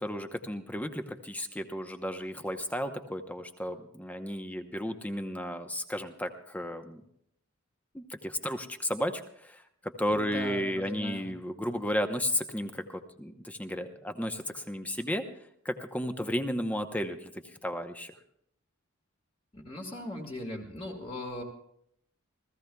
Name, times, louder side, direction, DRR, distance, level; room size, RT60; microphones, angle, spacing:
voice 1, 0.0-7.0 7.9-15.3 15.6-17.3 17.6-18.1, equal, 5° left, 7 dB, 0.8 m, -33 dB
voice 2, 10.1-11.3 19.5-21.4, left 1 dB, 25° left, 0 dB, 1.8 m, -39 dB
29.0 x 15.0 x 2.3 m, 0.71 s
head